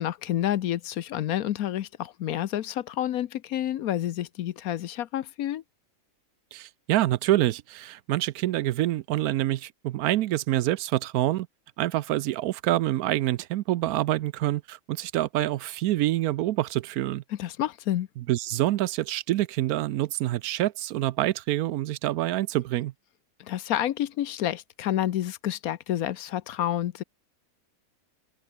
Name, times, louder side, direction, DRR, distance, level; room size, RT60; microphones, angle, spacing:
voice 1, 0.0-5.6 17.3-18.1 23.4-27.0, left 12 dB, 70° left, 1.1 m, -29 dB
voice 2, 6.5-11.5 11.8-17.2 18.2-22.9, right 15 dB, 75° right, 1.0 m, -26 dB
open air
omnidirectional pair, 1.7 m